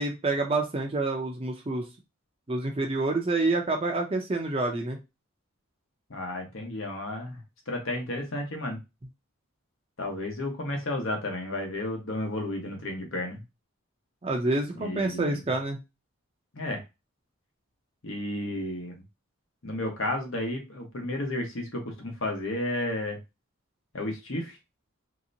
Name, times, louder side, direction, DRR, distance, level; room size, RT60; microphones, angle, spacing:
voice 1, 0.0-1.9 2.5-5.0 14.2-15.8, right 2 dB, 25° right, 2 dB, 0.5 m, -28 dB
voice 2, 6.1-7.4 7.7-8.8 10.0-13.4 14.8-15.4 16.5-16.8 18.0-19.0 19.6-23.2 23.9-24.6, left 1 dB, 70° left, 2 dB, 1.0 m, -32 dB
3.2 x 2.9 x 2.6 m, 0.24 s
head